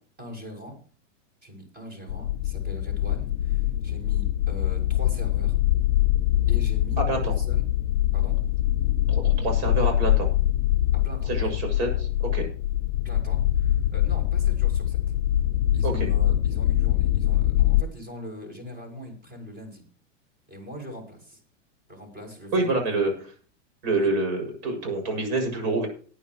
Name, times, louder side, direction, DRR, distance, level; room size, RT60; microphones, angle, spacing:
voice 1, 0.2-0.8 1.4-5.5 6.5-7.7 8.1-8.4 11.0-11.5 13.0-15.0 15.7-19.8 20.5-21.4 21.9-23.1 24.0-24.1, equal, 25° right, 3 dB, 6.4 m, -41 dB
sound 1, 2.1-17.8, left 13 dB, 85° left, 0.6 m, -23 dB
voice 2, 9.1-10.3 11.3-12.5 15.8-16.1 22.5-23.3 23.8-25.9, right 2 dB, 55° right, 3 dB, 6.9 m, -27 dB
19.0 x 10.0 x 3.1 m, 0.42 s
hypercardioid pair, 115°, 38 cm